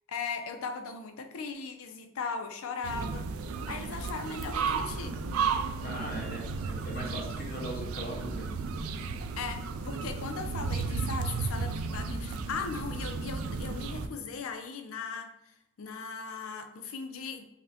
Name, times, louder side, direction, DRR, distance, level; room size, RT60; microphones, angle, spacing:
voice 1, 0.1-3.2 3.7-5.2 9.4-15.3 15.8-17.4, left 5 dB, 85° left, 7 dB, 0.5 m, -38 dB
sound 1, 2.8-14.1, right 5 dB, 90° right, 0.3 m, -34 dB
voice 2, 5.8-8.5, equal, 45° left, -3 dB, 1.0 m, -39 dB
5.8 x 2.1 x 2.7 m, 0.87 s
head